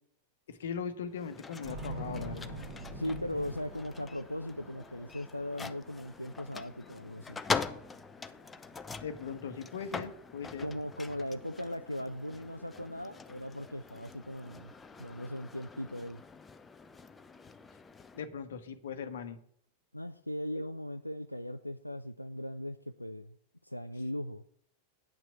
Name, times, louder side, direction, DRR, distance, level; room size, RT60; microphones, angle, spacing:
voice 1, 0.5-2.6 9.0-10.7 18.1-19.4, left 6 dB, 60° left, 10 dB, 1.1 m, -39 dB
sound 1, 1.1-18.3, left 4 dB, 15° left, 0.7 m, -43 dB
sound 2, 1.6-15.8, right 1 dB, 55° right, 4.8 m, -46 dB
voice 2, 2.9-7.4 10.6-14.7 15.0-16.2 19.9-23.4 23.6-24.4, left 1 dB, 85° left, 8 dB, 0.4 m, -38 dB
8.8 x 6.1 x 8.0 m, 0.66 s
figure-of-eight pair, 90°, 0 cm